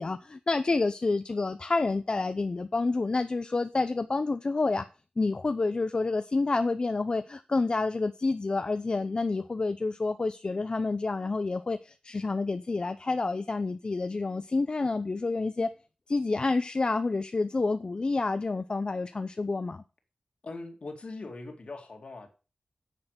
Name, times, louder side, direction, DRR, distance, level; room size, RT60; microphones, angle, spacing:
voice 1, 0.0-4.8 5.2-15.7 16.1-19.8, left 3 dB, 40° left, 0.6 m, -28 dB
voice 2, 20.4-22.3, left 3 dB, 55° left, 2.3 m, -41 dB
9.7 x 6.7 x 6.6 m
wide cardioid pair, 100°, 2 cm